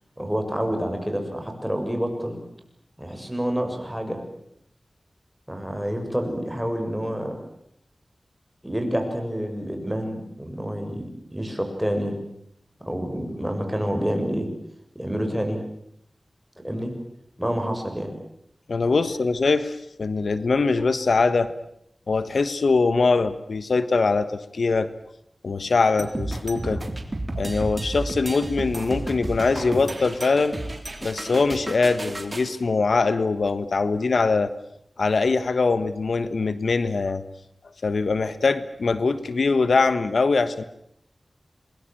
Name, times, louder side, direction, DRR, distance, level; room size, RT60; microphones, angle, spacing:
voice 1, 0.2-2.4 3.0-4.2 5.5-7.3 8.6-12.2 12.8-14.5 15.0-15.6 16.6-16.9 17.4-18.1, equal, 5° right, 4 dB, 6.9 m, -28 dB
voice 2, 18.7-21.5 22.1-24.9 25.4-26.8 27.4-34.5 35.0-37.2 37.8-40.6, left 4 dB, 85° left, 13 dB, 1.3 m, -22 dB
sound 1, 26.0-32.5, right 2 dB, 30° right, 3.6 m, -32 dB
27.0 x 21.5 x 9.0 m, 0.75 s
wide cardioid pair, 80°, 0 cm